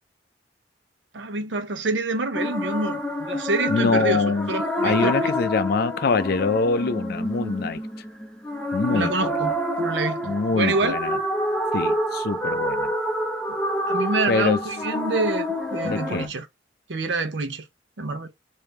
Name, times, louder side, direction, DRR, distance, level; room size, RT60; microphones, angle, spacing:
voice 1, 1.1-5.3 8.9-9.5 9.8-10.2 10.5-11.0 13.9-16.5 16.9-17.6 18.0-18.3, right 3 dB, 75° right, 0.8 m, -27 dB
sound 1, 2.3-16.3, equal, 5° left, 1.0 m, -27 dB
voice 2, 3.7-4.5 4.8-7.8 8.7-9.6 10.2-11.2 11.7-12.9 14.3-14.6 15.8-16.3, left 4 dB, 55° left, 0.4 m, -24 dB
3.5 x 2.7 x 3.2 m
head